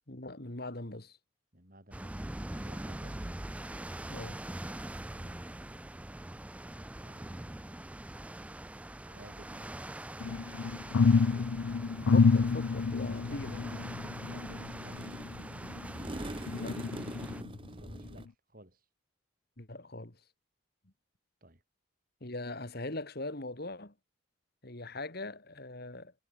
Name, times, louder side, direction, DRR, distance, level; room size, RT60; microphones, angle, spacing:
voice 1, 0.1-1.2 4.1-4.4 12.1-13.7 16.5-16.8 19.6-20.2 22.2-23.9 24.6-26.1, left 2 dB, 50° left, 2.2 m, -41 dB
voice 2, 1.5-3.4 5.1-5.4 7.0-7.8 9.0-9.8 12.9-15.0 17.5-18.8 21.4-21.6, right 1 dB, 45° right, 6.3 m, -55 dB
sound 1, 1.9-17.4, right 1 dB, 5° right, 0.3 m, -43 dB
sound 2, 10.2-16.0 16.5-17.6 18.1-18.2, left 5 dB, 80° left, 0.5 m, -29 dB
sound 3, 12.9-18.2, right 1 dB, 25° right, 1.2 m, -45 dB
head